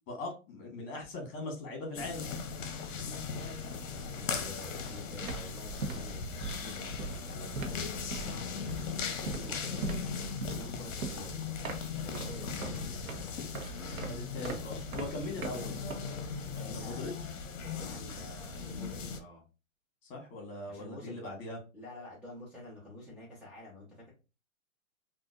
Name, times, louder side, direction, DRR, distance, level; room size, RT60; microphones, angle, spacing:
voice 1, 0.1-2.3 13.9-15.8 16.5-17.1 20.1-21.6, left 2 dB, 45° left, 1 dB, 1.6 m, -40 dB
sound 1, 1.9-19.2, left 5 dB, 65° left, 0.8 m, -38 dB
voice 2, 2.7-3.2 3.9-8.2 9.2-11.5 11.9-13.1 16.4-17.2 17.6-19.4 20.7-21.2 21.7-24.1, left 1 dB, 5° right, -11 dB, 0.7 m, -49 dB
sound 2, 5.2-16.5, right 4 dB, 85° right, 0.9 m, -41 dB
3.7 x 2.4 x 2.4 m, 0.31 s
hypercardioid pair, 140°, 41 cm